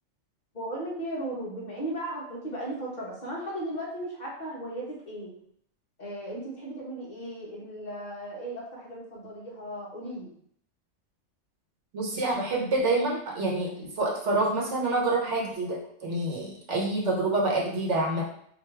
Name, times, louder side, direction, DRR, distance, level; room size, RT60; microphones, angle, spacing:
voice 1, 0.5-5.3 6.0-10.3, right 1 dB, 35° left, -4 dB, 1.4 m, -36 dB
voice 2, 11.9-18.2, right 2 dB, 70° right, -2 dB, 1.4 m, -27 dB
4.9 x 2.8 x 3.3 m, 0.65 s
omnidirectional pair, 1.3 m